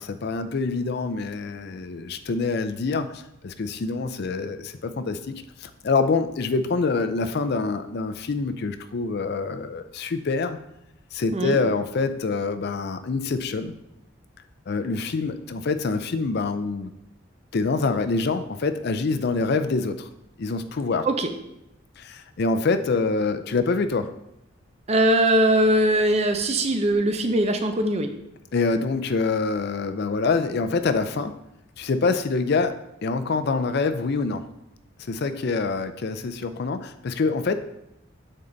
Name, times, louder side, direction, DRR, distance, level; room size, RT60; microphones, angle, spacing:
voice 1, 0.0-10.6 11.1-13.7 14.7-16.9 17.5-20.1 20.4-21.1 22.0-24.1 28.5-31.3 31.8-32.7 33.0-34.4 35.1-37.6, left 4 dB, 50° left, 10 dB, 0.4 m, -25 dB
voice 2, 24.9-28.1, right 1 dB, 30° right, 7 dB, 0.6 m, -21 dB
8.9 x 4.0 x 3.9 m, 0.83 s
head